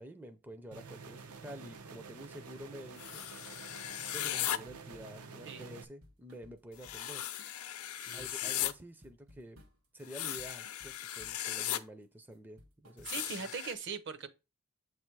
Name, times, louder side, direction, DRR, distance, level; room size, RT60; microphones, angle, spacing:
voice 1, 0.0-3.3 4.1-7.3 8.1-9.6 9.9-13.1, equal, 10° right, 0.4 m, -49 dB
sound 1, 0.7-5.8, right 4 dB, 90° right, 0.7 m, -49 dB
sound 2, 3.0-4.6 6.8-8.7 10.0-11.8 13.0-13.7, left 12 dB, 80° left, 0.5 m, -37 dB
sound 3, 4.7-5.4 5.8-7.1 7.4-7.7 7.9-9.9 10.1-11.4 11.7-12.0 12.3-13.3, left 1 dB, 70° right, 1.6 m, -60 dB
voice 2, 8.0-8.5 13.0-14.3, right 6 dB, 55° right, 0.7 m, -41 dB
7.8 x 3.3 x 4.5 m
head